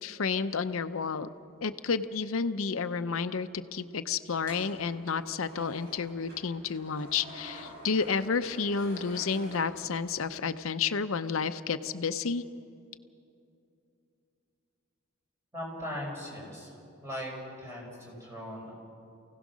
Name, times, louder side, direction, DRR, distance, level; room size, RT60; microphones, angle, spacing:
voice 1, 0.0-1.3 1.6-12.4, left 5 dB, 80° left, 11 dB, 0.7 m, -31 dB
sound 1, 4.3-10.3, equal, 50° right, 7.3 m, -48 dB
voice 2, 15.5-16.7 17.0-18.7, equal, 15° right, -3 dB, 5.7 m, -39 dB
28.0 x 17.0 x 6.3 m, 2.6 s
head